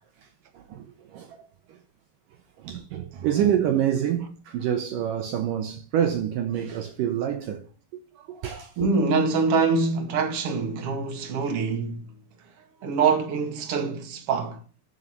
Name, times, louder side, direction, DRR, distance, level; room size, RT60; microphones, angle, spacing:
voice 1, 0.5-1.4 2.6-7.7 8.2-8.9, right 10 dB, 80° right, 1.9 m, -27 dB
voice 2, 8.8-12.1 12.8-14.6, right 4 dB, 45° right, 2.0 m, -24 dB
15.0 x 5.7 x 5.8 m
omnidirectional pair, 5.3 m